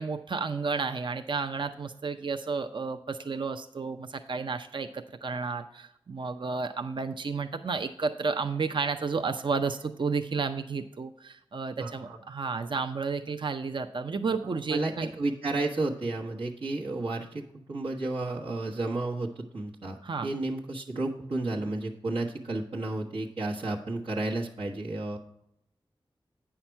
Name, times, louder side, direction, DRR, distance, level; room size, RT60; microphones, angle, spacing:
voice 1, 0.0-15.1 20.0-20.3, right 4 dB, 60° right, 7 dB, 0.5 m, -32 dB
voice 2, 11.8-12.2 14.5-17.4 17.7-20.0 20.2-25.2, right 2 dB, 85° right, -5 dB, 1.2 m, -32 dB
8.8 x 5.8 x 4.5 m, 0.77 s
wide cardioid pair, 65°, 9 cm